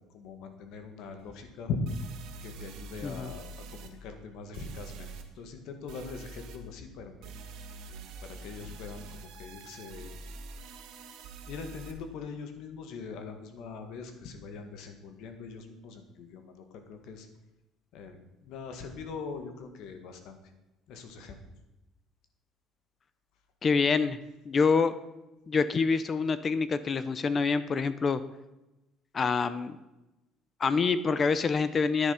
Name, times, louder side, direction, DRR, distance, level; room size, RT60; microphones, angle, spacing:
voice 1, 0.1-1.8 2.4-5.1 5.3-7.3 8.2-10.1 11.5-17.3 17.9-20.4 20.9-21.4, left 5 dB, 65° left, 7 dB, 1.8 m, -42 dB
sound 1, 1.2-1.3 1.8-3.9 4.5-5.2 5.9-6.6 7.2-11.9, right 3 dB, 70° right, 1.7 m, -45 dB
voice 2, 23.6-24.2 24.5-25.0 25.5-28.2 29.1-29.8 30.6-32.1, left 5 dB, 25° left, 14 dB, 0.5 m, -26 dB
10.0 x 9.9 x 5.7 m, 0.98 s
cardioid pair, 165°, 0 cm